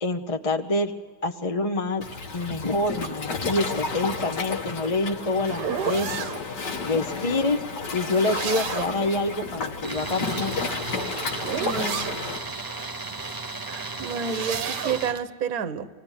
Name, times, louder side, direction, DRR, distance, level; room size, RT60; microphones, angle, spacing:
voice 1, 0.0-0.9 1.2-2.0 2.3-6.1 6.6-7.6 7.9-10.6, left 2 dB, 30° left, 4 dB, 0.7 m, -26 dB
Waves surf, 2.0-12.4, left 4 dB, 90° left, 2.4 m, -32 dB
sound 1, 4.6-6.4 7.9-9.1 10.5-12.2 13.9-15.1, right 8 dB, 80° right, 1.6 m, -32 dB
Tools, 9.8-15.2, right 3 dB, 25° right, 0.4 m, -35 dB
voice 2, 11.6-12.1 13.7-15.9, right 6 dB, 60° right, 11 dB, 1.5 m, -30 dB
25.5 x 18.0 x 10.0 m, 1.5 s
omnidirectional pair, 1.8 m